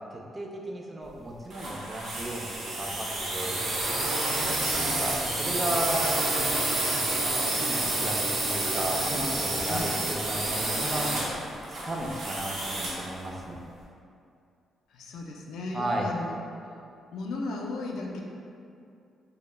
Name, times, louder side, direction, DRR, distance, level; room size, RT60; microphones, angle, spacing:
voice 1, 0.1-3.1 3.3-3.6 4.8-6.6 6.9-11.1 11.7-13.6 15.7-16.1, right 1 dB, 25° right, 0 dB, 0.3 m, -34 dB
sound 1, 1.5-13.1, right 2 dB, 75° right, 0.6 m, -29 dB
voice 2, 14.9-16.4 17.1-18.2, left 2 dB, 80° left, 0 dB, 0.3 m, -35 dB
2.1 x 2.0 x 3.1 m, 2.5 s
cardioid pair, 115°, 0 cm